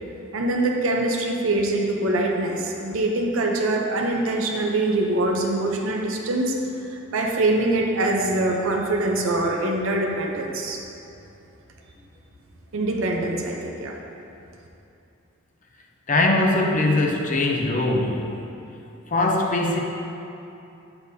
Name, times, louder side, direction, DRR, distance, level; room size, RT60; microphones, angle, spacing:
voice 1, 0.3-6.5 6.9-10.8 12.7-14.0, right 2 dB, 80° right, 0 dB, 0.7 m, -24 dB
voice 2, 16.1-18.4 19.1-19.8, left 2 dB, 40° left, 2 dB, 0.5 m, -21 dB
8.1 x 6.9 x 2.7 m, 2.8 s
head